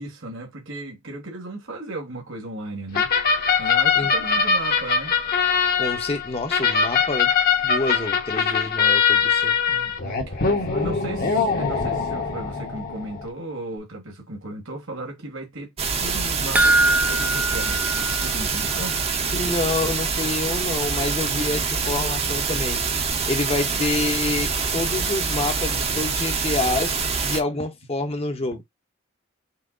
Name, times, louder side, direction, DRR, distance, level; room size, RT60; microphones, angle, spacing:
voice 1, 0.0-3.1 3.6-5.1 9.7-15.7 16.0-19.0, right 1 dB, 65° right, 1.7 m, -36 dB
sound 1, 2.9-13.3, left 6 dB, 50° left, 1.2 m, -22 dB
voice 2, 5.8-7.3 7.6-9.5 19.3-22.8 23.3-27.0 27.2-28.6, left 2 dB, 30° left, 0.9 m, -27 dB
sound 2, 15.8-27.4, right 5 dB, 30° right, 0.8 m, -25 dB
sound 3, 16.6-19.1 19.4-19.5 19.9-20.0, right 2 dB, 10° right, 0.3 m, -23 dB
5.7 x 2.1 x 3.9 m
head